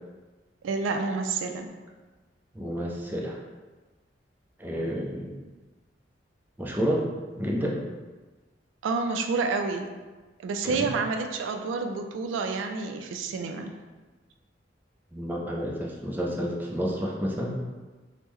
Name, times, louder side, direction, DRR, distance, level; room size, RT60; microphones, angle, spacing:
voice 1, 0.6-1.7 8.8-9.9 10.4-13.7, right 4 dB, 90° right, 5 dB, 0.3 m, -29 dB
voice 2, 2.5-3.4 4.6-5.4 6.6-7.1 7.4-7.8 10.6-10.9 15.1-17.5, equal, 10° right, -2 dB, 0.3 m, -30 dB
3.5 x 2.0 x 3.0 m, 1.3 s
head